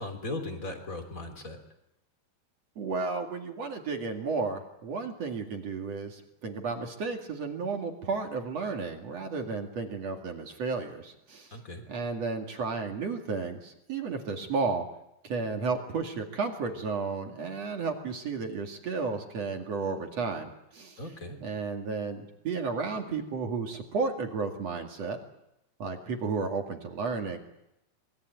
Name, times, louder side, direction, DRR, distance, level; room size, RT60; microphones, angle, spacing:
voice 1, 0.0-1.6 11.5-11.8 21.0-21.4, left 2 dB, 20° left, 6 dB, 2.9 m, -37 dB
voice 2, 2.8-11.6 11.9-14.9 15.2-21.0 21.4-25.2 25.8-27.4, right 4 dB, 45° right, 3 dB, 2.6 m, -33 dB
25.5 x 21.5 x 9.1 m, 0.86 s
omnidirectional pair, 5.3 m